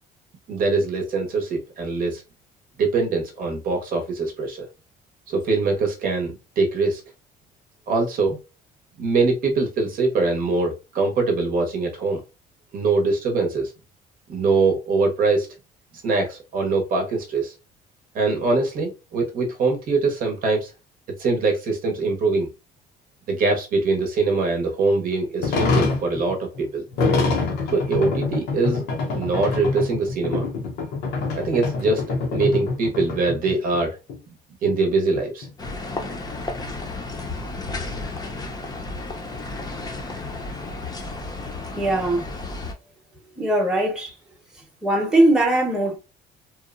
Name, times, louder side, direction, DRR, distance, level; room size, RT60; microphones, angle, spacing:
voice 1, 0.5-2.2 2.8-4.7 5.3-7.0 7.9-8.4 9.0-12.2 12.7-13.7 14.3-15.5 16.0-17.5 18.1-20.7 21.2-22.5 23.3-26.8 27.7-28.8 29.1-30.5 31.3-32.1 32.3-34.0 34.6-35.5, right 3 dB, 55° right, 0.8 m, -23 dB
sound 1, 25.4-33.8 34.1-34.2 34.7-34.8 35.1-36.8, left 3 dB, 80° left, 0.7 m, -25 dB
sound 2, 35.6-42.7, left 2 dB, 25° left, 0.6 m, -32 dB
voice 2, 41.8-42.2 43.4-44.1 44.8-46.0, right 1 dB, 5° right, 0.8 m, -20 dB
2.9 x 2.0 x 2.4 m
cardioid pair, 110°, 17 cm